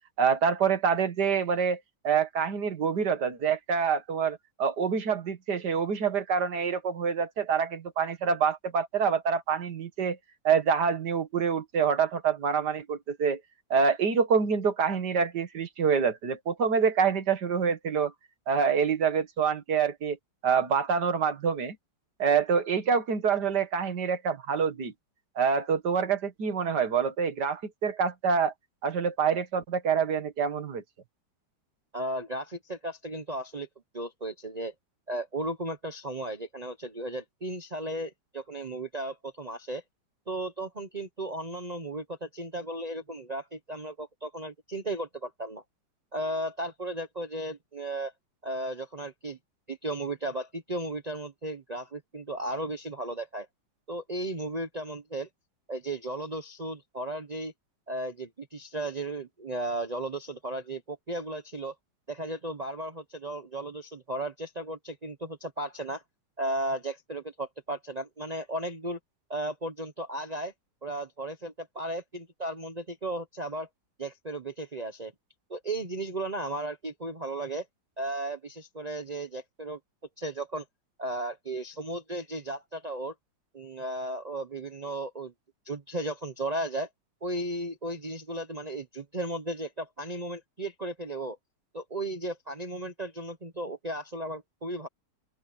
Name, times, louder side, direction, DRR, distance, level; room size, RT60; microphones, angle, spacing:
voice 1, 0.2-10.2 10.4-13.4 13.7-18.1 18.5-20.2 20.4-21.8 22.2-24.9 25.4-28.5 28.8-30.8, right 6 dB, 65° right, 2.3 m, -26 dB
voice 2, 31.9-33.7 33.9-34.7 35.1-39.8 40.3-45.6 46.1-48.1 48.4-49.4 49.7-53.5 53.9-55.3 55.7-57.5 57.9-61.7 62.1-66.0 66.4-69.0 69.3-70.5 70.8-73.7 74.0-75.1 75.5-77.7 78.0-79.8 80.2-80.6 81.0-83.1 83.5-85.3 85.6-86.9 87.2-91.4 91.7-94.9, right 1 dB, 25° right, 1.0 m, -35 dB
open air
omnidirectional pair, 2.0 m